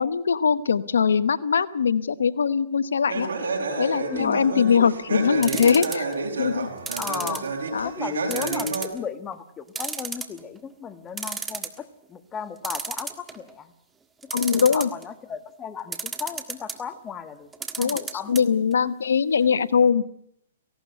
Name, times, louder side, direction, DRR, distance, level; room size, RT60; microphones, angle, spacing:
voice 1, 0.0-3.3 3.8-6.1 6.4-6.7 7.7-7.9 14.3-14.9 17.8-18.0 18.3-20.0, left 6 dB, 85° left, 15 dB, 1.0 m, -21 dB
sound 1, 3.1-8.8, right 3 dB, 80° right, 5.7 m, -29 dB
voice 2, 4.1-4.8 7.0-7.5 7.8-13.7 14.2-17.5 17.8-18.4 18.8-18.9, left 7 dB, 15° left, 11 dB, 1.5 m, -36 dB
sound 2, 5.4-6.2 6.9-7.8 8.3-9.0 9.3-9.4 9.7-10.6 10.9-11.0 11.2-11.8 12.6-13.5 14.2-15.0 15.9-16.8 17.5-18.4 18.7-18.8 19.0-19.1, right 5 dB, 10° right, 1.6 m, -32 dB
18.0 x 17.0 x 9.5 m, 0.70 s
hypercardioid pair, 145°, 0 cm